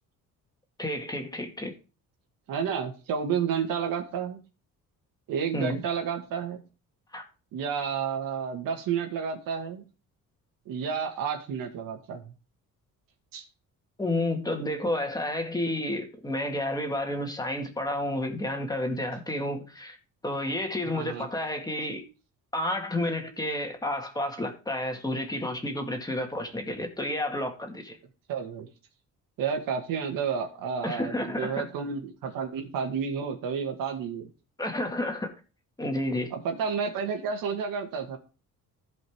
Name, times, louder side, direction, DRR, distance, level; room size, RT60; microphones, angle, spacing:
voice 1, 0.8-1.7 5.5-5.8 7.1-7.2 14.0-20.0 20.2-22.0 22.5-28.0 30.8-31.6 34.6-35.3 35.8-36.3, left 1 dB, 10° left, 1.9 m, -30 dB
voice 2, 2.5-4.4 5.3-6.6 7.5-9.8 10.7-12.3 13.3-13.4 20.8-21.3 28.3-28.7 29.4-34.3 36.3-38.2, right 6 dB, 85° right, 2.2 m, -31 dB
15.5 x 5.3 x 3.7 m
cardioid pair, 140°, 33 cm